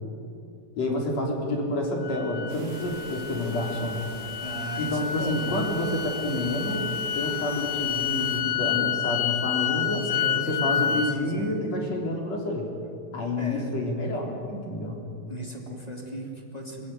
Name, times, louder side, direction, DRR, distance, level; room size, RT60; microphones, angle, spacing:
voice 1, 0.8-4.0 4.8-6.9 7.1-10.0 10.3-12.7 13.1-15.0, left 1 dB, 35° left, 0 dB, 4.3 m, -29 dB
sound 1, 2.0-11.2, left 9 dB, 90° left, 2.1 m, -29 dB
sound 2, 2.5-8.4, right 3 dB, 75° right, 5.8 m, -45 dB
voice 2, 4.4-5.7 10.0-11.6 13.4-13.7 15.3-16.9, right 1 dB, 15° left, 1 dB, 1.5 m, -37 dB
24.5 x 21.5 x 9.3 m, 2.5 s
omnidirectional pair, 5.8 m